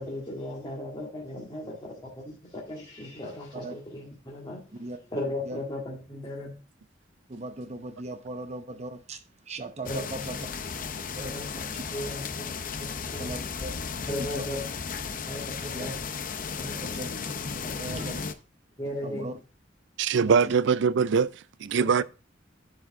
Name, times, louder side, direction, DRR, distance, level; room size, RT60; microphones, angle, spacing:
voice 1, 0.0-1.9 2.2-4.6 5.1-6.5 9.8-10.0 11.2-11.6 11.9-12.4 13.1-13.3 14.1-14.6 15.3-15.9 16.6-16.7 17.6-18.1 18.8-19.3, left 1 dB, 25° left, 2.0 m, -36 dB
voice 2, 7.3-10.4 11.2-11.4 11.7-11.8 13.2-13.7 14.2-14.6 15.7-15.9 16.8-17.1 17.8-18.2 19.0-19.4 20.2-20.5 22.0-22.1, right 2 dB, 35° right, 0.8 m, -38 dB
sound 1, 9.9-18.3, left 5 dB, 45° left, 0.7 m, -35 dB
voice 3, 20.0-22.0, right 6 dB, 65° right, 0.4 m, -23 dB
11.0 x 5.0 x 3.6 m
head